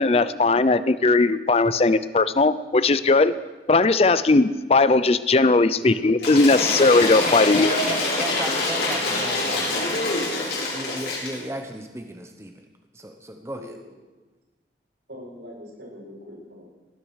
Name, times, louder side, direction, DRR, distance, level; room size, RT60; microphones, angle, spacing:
voice 1, 0.0-3.3 3.7-7.7, left 3 dB, 35° left, 15 dB, 0.5 m, -18 dB
voice 2, 5.7-6.8 7.2-9.9 10.7-12.7 12.9-13.8, right 1 dB, 15° right, 5 dB, 0.9 m, -36 dB
Cheering / Applause / Crowd, 6.2-11.4, left 2 dB, 70° left, 5.5 m, -25 dB
voice 3, 6.5-6.8 13.5-13.7 15.1-16.6, equal, 80° right, -4 dB, 7.4 m, -41 dB
18.5 x 11.5 x 6.4 m, 1.2 s
head